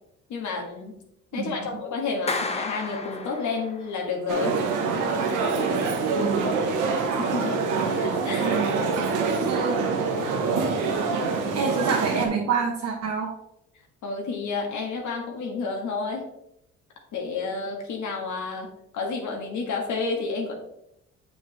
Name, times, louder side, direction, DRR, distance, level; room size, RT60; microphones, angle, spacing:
voice 1, 0.3-0.9 1.3-4.6 7.2-7.6 8.0-8.6 14.0-16.2 17.1-18.7 18.9-20.5, left 4 dB, 75° left, 1 dB, 1.7 m, -30 dB
voice 2, 1.3-1.7 6.1-6.5 8.4-9.8 11.5-13.3, right 5 dB, 60° right, -2 dB, 1.4 m, -28 dB
Clapping, 2.3-3.9, left 3 dB, 20° left, 0.9 m, -31 dB
sound 1, 4.3-12.3, right 4 dB, 90° right, 1.2 m, -25 dB
7.1 x 6.6 x 3.3 m, 0.79 s
cardioid pair, 90°, 30 cm